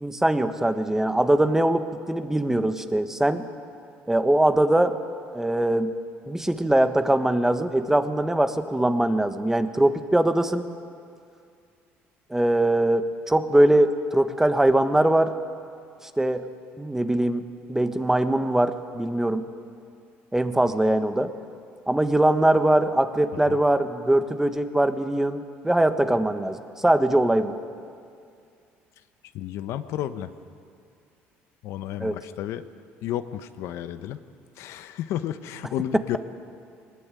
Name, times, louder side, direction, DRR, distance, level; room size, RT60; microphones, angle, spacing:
voice 1, 0.0-3.4 4.1-5.0 5.3-5.9 6.3-10.6 12.3-15.4 16.2-16.5 16.8-17.4 17.7-19.4 20.3-21.3 21.9-27.5 32.0-32.2, right 1 dB, 10° right, 9 dB, 1.4 m, -22 dB
voice 2, 29.3-30.3 31.6-32.6 33.0-34.2 34.6-36.2, left 11 dB, 70° left, 11 dB, 1.0 m, -32 dB
20.5 x 19.5 x 9.2 m, 2.3 s
supercardioid pair, 90°, 5 cm